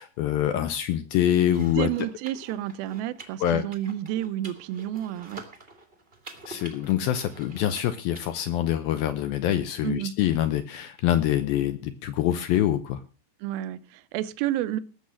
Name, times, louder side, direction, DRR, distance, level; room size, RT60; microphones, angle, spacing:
voice 1, 0.0-1.9 3.4-3.6 6.5-13.0, left 11 dB, 75° left, 10 dB, 2.3 m, -25 dB
sound 1, 1.4-8.2, right 2 dB, 35° right, 0.8 m, -47 dB
voice 2, 1.6-5.4 9.8-10.1 13.4-14.8, right 13 dB, 75° right, 14 dB, 2.4 m, -30 dB
19.0 x 7.3 x 6.3 m, 0.35 s
omnidirectional pair, 5.0 m